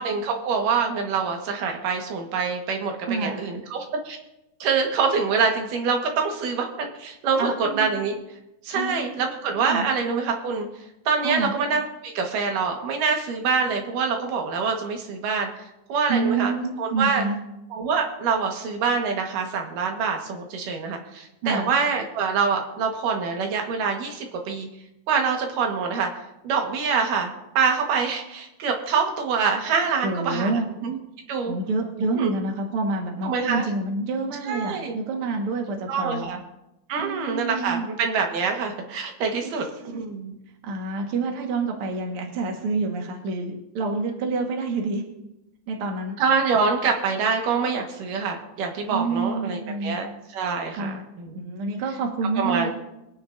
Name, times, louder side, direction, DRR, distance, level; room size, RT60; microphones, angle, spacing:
voice 1, 0.0-4.2 4.6-8.2 8.6-10.7 11.1-15.5 15.9-17.2 17.7-24.7 25.1-26.1 26.4-31.0 31.3-31.6 32.1-32.3 33.2-33.6 34.4-35.0 35.9-36.4 36.9-40.4 46.2-51.4 52.4-52.7, right 5 dB, 85° right, 3 dB, 3.1 m, -25 dB
voice 2, 3.1-3.4 7.4-8.0 8.7-9.8 11.2-11.5 16.1-17.4 21.4-21.7 30.0-30.7 31.4-36.3 37.0-37.9 39.5-40.0 40.6-45.0 45.7-46.2 48.9-50.0 50.8-51.0 51.3-52.7, right 3 dB, 50° right, 1 dB, 2.1 m, -28 dB
23.0 x 9.3 x 2.6 m, 0.91 s
omnidirectional pair, 3.7 m